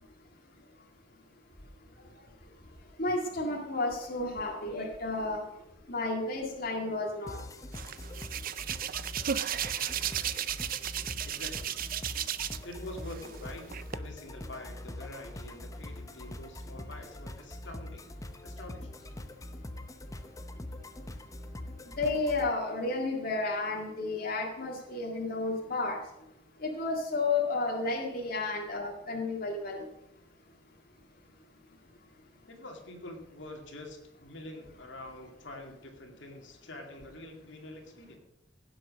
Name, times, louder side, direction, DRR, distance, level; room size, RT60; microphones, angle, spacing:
voice 1, 3.0-5.4 5.9-7.4 22.0-26.0 26.6-29.8, left 3 dB, 50° left, -1 dB, 2.0 m, -32 dB
sound 1, 7.3-22.5, left 1 dB, 15° left, 0.8 m, -43 dB
Hands, 7.7-12.7 13.1-14.0, right 10 dB, 50° right, 0.5 m, -34 dB
voice 2, 11.2-11.7 12.6-18.0 18.4-18.9 32.5-38.2, left 1 dB, 70° left, 2 dB, 2.3 m, -46 dB
16.5 x 7.7 x 6.3 m, 0.87 s
head